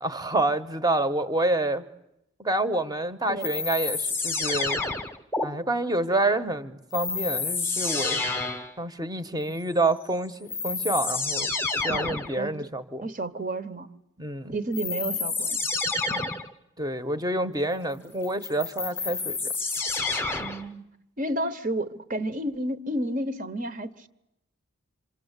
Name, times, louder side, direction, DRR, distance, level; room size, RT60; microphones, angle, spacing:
voice 1, 0.0-1.8 2.4-4.8 5.4-8.2 8.8-11.5 11.8-13.1 14.2-14.5 16.8-19.5, right 2 dB, 15° right, 11 dB, 1.0 m, -28 dB
sound 1, 3.4-5.5 6.9-8.7 10.0-10.1 10.5-12.3 14.7-16.5 18.2-20.7, left 3 dB, 10° left, 1.0 m, -29 dB
voice 2, 11.8-12.7 13.0-13.9 14.5-15.6 16.1-16.3 20.4-20.8 21.2-24.1, right 1 dB, 40° right, 11 dB, 1.0 m, -31 dB
27.0 x 26.0 x 8.2 m, 0.87 s
head